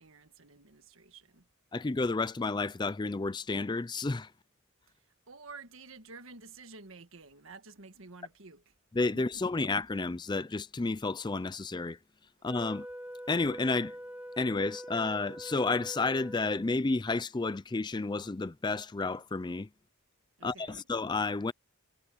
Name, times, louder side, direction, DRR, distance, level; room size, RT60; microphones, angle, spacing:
voice 1, 0.0-1.5 4.9-8.7 9.1-9.4 20.4-20.9, right 4 dB, 65° right, 1.6 m, -51 dB
voice 2, 1.7-4.3 9.0-12.0 12.4-12.9 13.3-14.0 14.4-19.7 20.4-21.5, left 3 dB, 20° left, 0.4 m, -31 dB
Wind instrument woodwind instrument, 12.5-16.8, equal, 5° right, 1.4 m, -44 dB
head